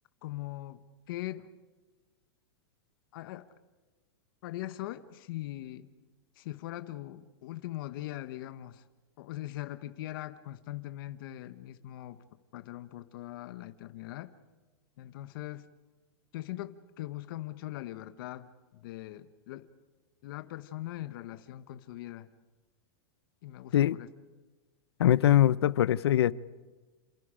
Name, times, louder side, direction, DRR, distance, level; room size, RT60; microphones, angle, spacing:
voice 1, 0.2-0.8 1.1-1.5 3.1-3.5 4.4-5.9 6.4-8.8 9.2-12.2 12.5-14.3 15.0-15.7 16.3-19.7 20.2-22.3 23.4-24.1, left 15 dB, 60° left, 1.2 m, -41 dB
voice 2, 25.0-26.3, left 12 dB, 85° left, 0.7 m, -22 dB
28.5 x 28.0 x 5.1 m
supercardioid pair, 145°, 13 cm